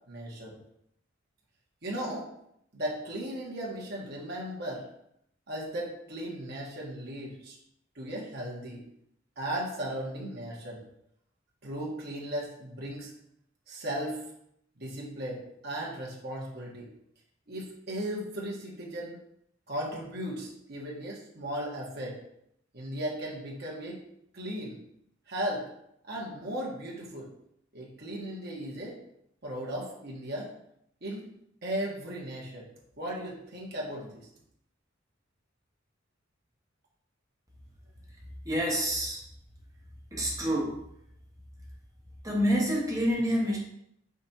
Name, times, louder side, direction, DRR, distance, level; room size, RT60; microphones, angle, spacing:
voice 1, 0.1-0.6 1.8-2.3 2.7-4.9 5.5-7.6 8.0-8.8 9.4-10.8 11.6-13.1 13.7-14.2 14.8-16.9 17.5-19.2 19.7-22.2 22.7-24.0 24.3-24.8 25.3-25.6 26.1-27.3 27.7-29.0 29.4-30.5 31.0-31.3 31.6-32.7 33.0-34.3, right 1 dB, 55° right, -3 dB, 1.7 m, -36 dB
voice 2, 38.4-39.2 40.1-40.8 42.2-43.6, equal, 15° right, -3 dB, 1.6 m, -27 dB
5.4 x 4.3 x 4.4 m, 0.75 s
head